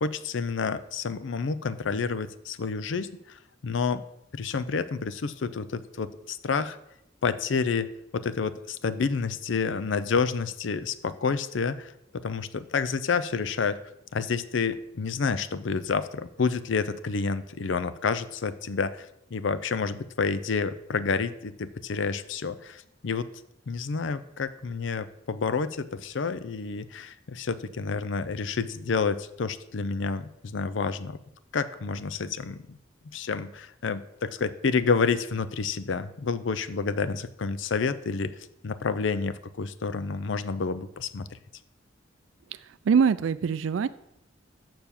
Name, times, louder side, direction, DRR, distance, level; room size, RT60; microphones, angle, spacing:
voice 1, 0.0-4.0 4.3-6.8 7.2-13.8 14.1-23.3 23.7-31.2 31.5-32.8 33.1-38.4 38.6-41.4, left 5 dB, 70° left, 14 dB, 0.5 m, -29 dB
voice 2, 42.8-43.9, right 6 dB, 80° right, 15 dB, 0.4 m, -23 dB
6.8 x 5.9 x 7.1 m, 0.81 s
head